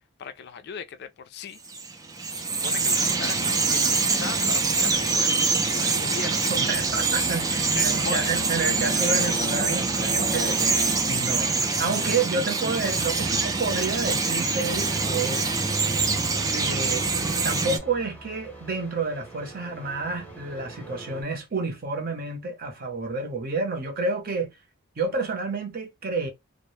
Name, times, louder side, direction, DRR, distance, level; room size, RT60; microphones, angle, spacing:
voice 1, 0.2-1.6 2.3-6.5 7.7-8.3, left 6 dB, 55° left, 0.4 m, -38 dB
Bird vocalization bird call bird song, 1.6-17.8, right 4 dB, 20° right, 0.4 m, -24 dB
sound 1, 4.3-21.2, right 1 dB, 5° left, 0.8 m, -44 dB
voice 2, 6.5-15.7 16.5-17.1 17.4-24.5 25.0-26.3, right 3 dB, 45° right, 0.7 m, -30 dB
2.0 x 2.0 x 3.0 m
head